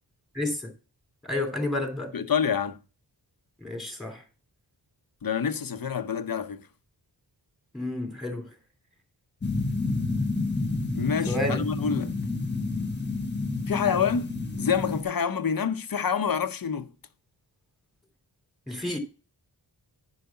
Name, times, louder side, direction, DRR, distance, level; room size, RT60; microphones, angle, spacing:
voice 1, 0.3-0.7 1.2-2.1 3.6-4.2 7.7-8.5 11.3-11.6 18.7-19.0, left 1 dB, ahead, 2.9 m, -30 dB
voice 2, 2.1-2.8 5.2-6.7 10.9-12.1 13.7-16.9, left 7 dB, 50° left, 0.9 m, -27 dB
sound 1, 9.4-15.0, left 3 dB, 25° left, 1.4 m, -29 dB
10.5 x 5.0 x 5.7 m
wide cardioid pair, 110°, 43 cm